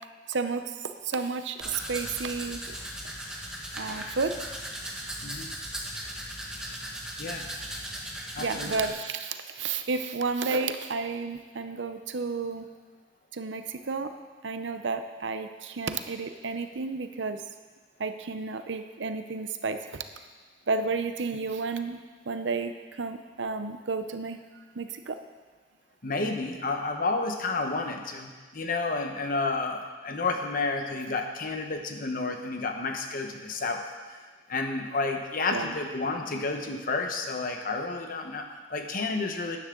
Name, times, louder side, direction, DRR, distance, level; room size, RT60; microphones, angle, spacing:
voice 1, 0.3-2.6 3.8-4.4 8.4-12.7 13.3-14.1 14.4-17.4 18.0-20.0 20.7-24.4 24.8-25.2 35.5-35.7, right 4 dB, 80° right, 8 dB, 0.7 m, -32 dB
Domestic sounds home sounds, 1.6-8.9, right 1 dB, 5° right, 1.4 m, -37 dB
voice 2, 5.2-5.5 7.2-7.5 8.3-8.8 26.0-33.8 34.5-39.6, left 3 dB, 50° left, 4 dB, 1.1 m, -31 dB
13.0 x 10.0 x 3.8 m, 1.4 s
head